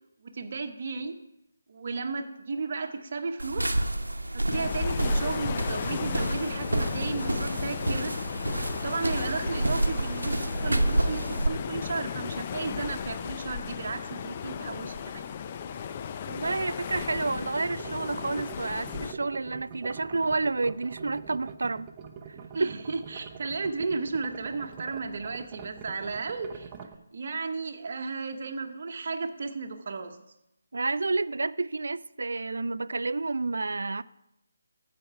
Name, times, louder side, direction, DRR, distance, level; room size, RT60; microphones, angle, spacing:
voice 1, 0.2-1.2 1.7-3.8 4.3-8.2 8.7-15.3 22.5-26.7 27.1-30.2, right 4 dB, 50° right, 1.0 m, -34 dB
sound 1, 3.4-11.5, right 1 dB, 85° right, 0.8 m, -29 dB
sound 2, 4.5-19.1, left 7 dB, 30° left, 0.5 m, -35 dB
voice 2, 16.3-21.9 22.6-22.7 30.7-34.0, right 3 dB, 65° right, 0.3 m, -30 dB
sound 3, 16.9-27.0, right 6 dB, 20° right, 0.7 m, -44 dB
14.5 x 5.2 x 4.7 m
figure-of-eight pair, 150°, 0 cm